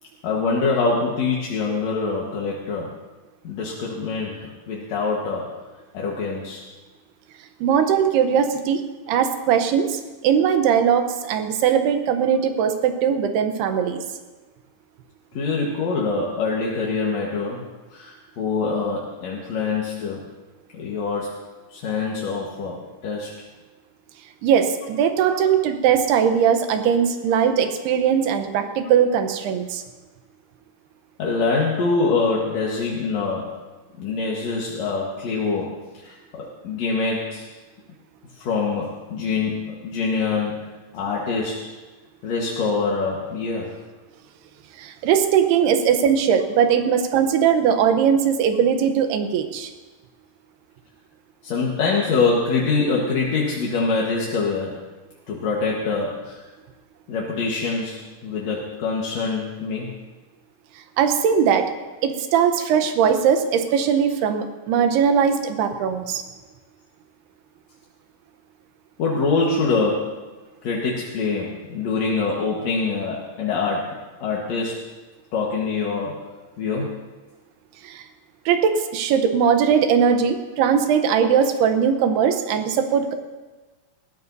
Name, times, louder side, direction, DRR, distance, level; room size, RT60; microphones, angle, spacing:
voice 1, 0.2-2.9 3.4-5.5 5.9-6.6 15.3-17.6 17.9-20.2 20.7-21.4 21.7-23.4 31.2-33.6 34.0-35.7 36.0-37.5 38.4-41.7 42.2-43.7 51.4-54.8 55.3-56.4 57.1-59.9 69.0-70.3 70.6-74.8 75.3-76.2 76.6-77.0, left 4 dB, 55° left, -3 dB, 2.1 m, -24 dB
voice 2, 7.6-8.8 9.1-14.0 24.4-29.8 44.8-49.7 61.0-61.7 62.0-66.2 77.8-78.0 78.5-83.1, right 7 dB, 85° right, 7 dB, 3.0 m, -20 dB
20.5 x 16.0 x 2.7 m, 1.2 s
omnidirectional pair, 4.5 m